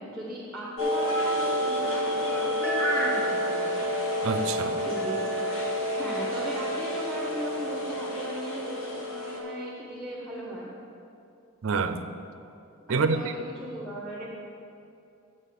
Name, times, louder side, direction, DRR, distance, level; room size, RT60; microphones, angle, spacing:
voice 1, 0.0-3.9 4.8-5.2 5.9-10.7 12.9-14.3, right 1 dB, ahead, -4 dB, 1.0 m, -38 dB
sound 1, 0.8-9.4, equal, 75° left, 1.4 m, -29 dB
voice 2, 4.2-4.8 11.6-12.1 12.9-13.2, right 4 dB, 75° right, 10 dB, 0.5 m, -26 dB
7.4 x 6.6 x 6.9 m, 2.6 s
head